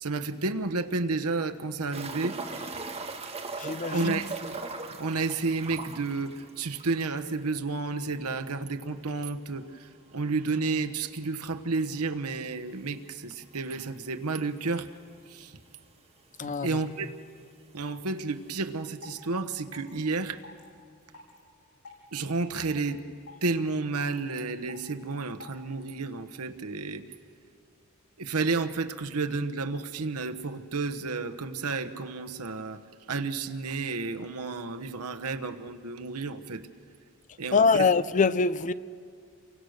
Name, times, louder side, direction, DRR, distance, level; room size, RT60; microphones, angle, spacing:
voice 1, 0.0-2.4 3.9-4.6 5.0-14.9 15.3-15.5 16.4-17.1 17.7-20.4 22.1-23.0 23.4-27.0 28.2-32.8 33.1-36.6 37.4-37.9, right 3 dB, 90° right, 1.2 m, -31 dB
sound 1, 1.9-7.3 7.6-7.7 8.0-8.1 10.9-11.0 12.7-12.8 13.6-13.7 13.9-14.0 14.9-15.0 15.1-15.8 16.7-16.8, right 3 dB, 30° right, 1.6 m, -39 dB
voice 2, 3.6-4.2 16.4-16.7 37.5-38.7, left 4 dB, 35° left, 0.5 m, -24 dB
sound 2, 18.5-18.6 19.0-19.3 19.7-19.9 20.4-20.6 21.1-21.4 21.8-22.1 22.5-22.7 23.3-23.5 24.0-24.2 24.7-24.9 25.4-25.6, left 3 dB, 90° left, 7.9 m, -47 dB
29.5 x 23.5 x 6.6 m
head